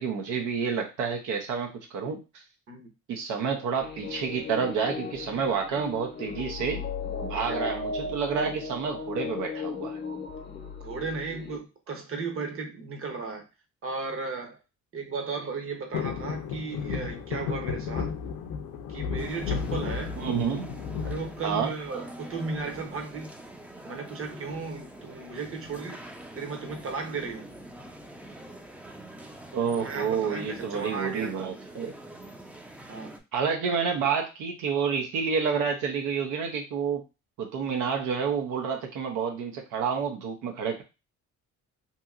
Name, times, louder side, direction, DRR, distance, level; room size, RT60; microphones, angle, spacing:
voice 1, 0.0-2.4 3.1-6.8 7.2-10.0 20.2-20.7 21.4-21.7 29.5-31.9 33.3-37.0 37.4-40.8, right 6 dB, 90° right, 0.6 m, -29 dB
sound 1, 3.8-11.6, left 4 dB, 35° left, 0.6 m, -36 dB
voice 2, 7.3-7.8 10.8-13.5 13.8-14.6 14.9-18.1 18.9-20.2 21.0-23.3 23.8-26.0 26.4-27.5 29.8-31.3 32.9-33.2 33.8-33.9, right 4 dB, 45° right, 0.8 m, -35 dB
sound 2, 15.9-22.1 22.5-23.1 24.4-24.8 25.1-25.2 25.5-25.8 26.6-27.5 28.0-28.1, left 6 dB, 85° left, 0.5 m, -34 dB
sound 3, 19.2-33.2, right 1 dB, 5° right, 0.4 m, -45 dB
2.8 x 2.7 x 2.4 m
cardioid pair, 90°, 30 cm